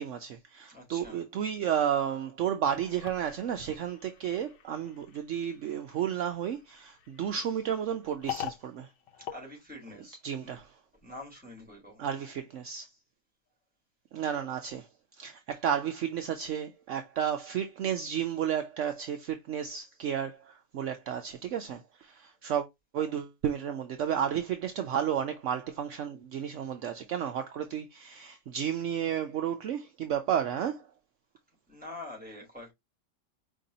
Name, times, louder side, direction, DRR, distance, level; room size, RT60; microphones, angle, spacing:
voice 1, 0.0-8.9 10.2-10.7 12.0-12.9 14.1-14.9 15.2-22.7 22.9-30.9, right 9 dB, 65° right, 0.7 m, -32 dB
voice 2, 0.7-1.2 9.3-10.6 11.0-12.1 26.3-26.5 31.7-32.7, left 1 dB, 5° right, 3.4 m, -46 dB
sound 1, 2.6-10.3, left 11 dB, 85° left, 1.4 m, -45 dB
5.2 x 3.3 x 2.7 m
omnidirectional pair, 1.8 m